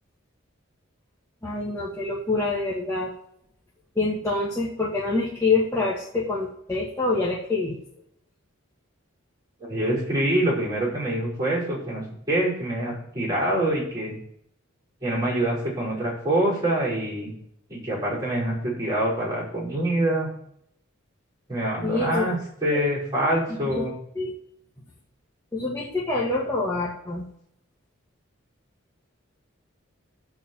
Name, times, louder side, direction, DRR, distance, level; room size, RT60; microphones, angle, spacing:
voice 1, 1.4-3.1 3.9-7.8 21.8-22.4 22.7-22.8 23.6-23.8 24.1-24.3 25.5-27.2, left 3 dB, 15° left, -6 dB, 1.4 m, -26 dB
voice 2, 9.6-14.1 15.0-17.3 17.7-20.3 21.5-23.9, right 1 dB, 20° right, -6 dB, 5.2 m, -25 dB
12.5 x 4.7 x 7.2 m, 0.70 s
head